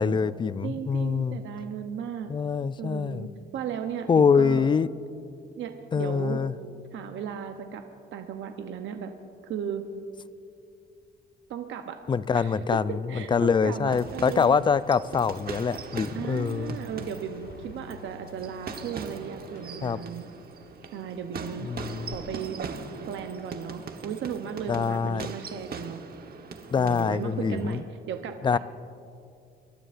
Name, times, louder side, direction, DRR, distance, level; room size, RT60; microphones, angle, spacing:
voice 1, 0.0-1.4 2.3-3.3 4.1-4.9 5.9-6.5 12.1-16.8 19.8-20.0 21.6-22.1 24.7-25.3 26.7-27.8 28.4-28.6, left 6 dB, 25° left, 16 dB, 0.4 m, -24 dB
voice 2, 0.6-2.3 2.8-4.7 5.6-6.4 6.9-7.8 8.1-9.1 9.4-9.8 11.5-12.0 12.3-14.6 16.1-20.3 20.9-21.7 22.1-22.7 23.1-26.0 26.8-28.6, right 8 dB, 70° right, 5 dB, 0.8 m, -35 dB
sound 1, 13.9-27.8, right 5 dB, 50° right, 1.1 m, -41 dB
sound 2, 16.4-22.7, left 7 dB, 70° left, 0.6 m, -50 dB
26.0 x 12.5 x 2.5 m, 2.5 s
cardioid pair, 90°, 20 cm